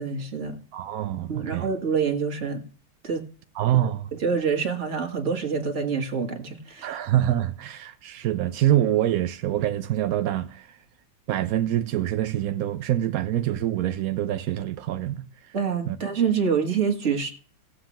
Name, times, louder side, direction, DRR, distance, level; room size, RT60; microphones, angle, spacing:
voice 1, 0.0-0.6 1.3-2.6 3.0-3.3 3.8-3.9 4.2-7.0 15.5-17.3, right 6 dB, 40° right, 1.7 m, -26 dB
voice 2, 0.7-1.7 3.5-4.1 6.8-10.8 11.3-15.5 15.9-16.0, right 12 dB, 75° right, 0.8 m, -25 dB
17.0 x 7.7 x 3.0 m
omnidirectional pair, 2.1 m